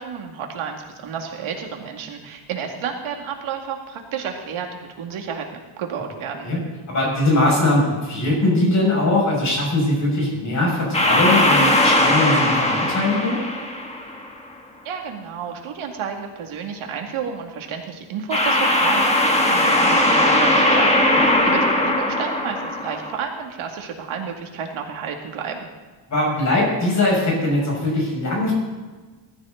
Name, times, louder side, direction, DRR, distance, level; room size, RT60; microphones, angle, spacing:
voice 1, 0.0-5.4 5.8-6.5 14.8-25.7, right 6 dB, 80° right, 2 dB, 2.4 m, -31 dB
voice 2, 6.9-13.4 26.1-28.5, left 1 dB, 35° left, -2 dB, 6.3 m, -20 dB
sound 1, 10.9-14.3 18.3-23.1, left 1 dB, 15° left, 1.6 m, -19 dB
20.5 x 13.5 x 4.0 m, 1.3 s
cardioid pair, 155°, 48 cm